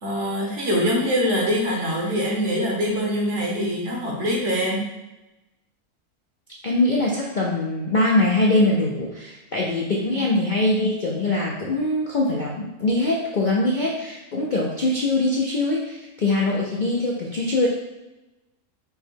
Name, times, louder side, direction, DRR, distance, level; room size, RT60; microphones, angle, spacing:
voice 1, 0.0-4.9 10.1-10.3, equal, 55° right, -2 dB, 1.3 m, -24 dB
voice 2, 6.6-17.7, left 2 dB, 55° left, -3 dB, 0.5 m, -22 dB
5.3 x 2.2 x 4.5 m, 1.0 s
omnidirectional pair, 1.5 m